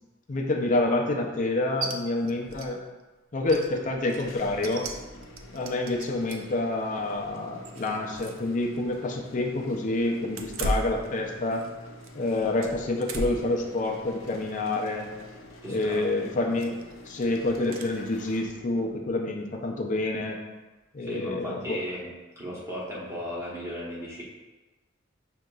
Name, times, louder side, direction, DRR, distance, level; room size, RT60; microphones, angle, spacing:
voice 1, 0.3-2.8 3.3-4.9 5.5-11.6 12.1-15.1 15.7-16.8 17.0-20.4 20.9-21.8, left 2 dB, 40° left, 1 dB, 0.5 m, -28 dB
sound 1, 1.8-1.9 2.3-2.7 3.0-3.1 3.4-6.6 7.1-8.5 8.8-8.9 10.3-11.7 12.0-13.5 14.0-14.3 15.7-16.1 16.5-16.9 17.7-17.9, right 1 dB, 80° right, 0.4 m, -36 dB
sound 2, 4.1-19.0, left 1 dB, 90° left, 0.6 m, -47 dB
voice 2, 15.6-16.1 16.4-16.5 21.0-22.1 22.4-24.2, equal, 15° right, -6 dB, 1.1 m, -36 dB
6.2 x 2.8 x 2.3 m, 1.2 s
head